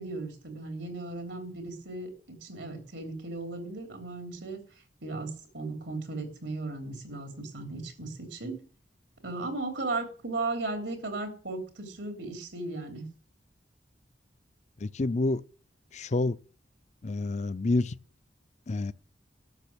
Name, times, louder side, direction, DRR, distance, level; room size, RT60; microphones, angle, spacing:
voice 1, 0.0-4.6 5.0-8.6 9.2-13.0, right 3 dB, 85° right, 3.3 m, -36 dB
voice 2, 14.8-15.4 15.9-16.4 17.0-17.9 18.7-18.9, left 2 dB, 40° left, 0.5 m, -28 dB
12.5 x 6.5 x 8.5 m
head